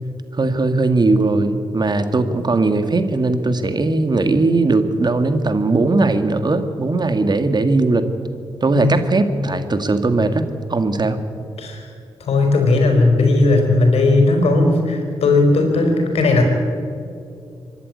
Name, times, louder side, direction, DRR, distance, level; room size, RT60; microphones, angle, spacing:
voice 1, 0.3-8.1 8.6-10.4 10.7-11.2, right 3 dB, 45° right, 9 dB, 2.0 m, -18 dB
voice 2, 11.6-11.9 12.2-16.4, left 2 dB, 75° left, 3 dB, 4.0 m, -16 dB
24.5 x 11.0 x 9.6 m, 2.5 s
supercardioid pair, 40°, 10 cm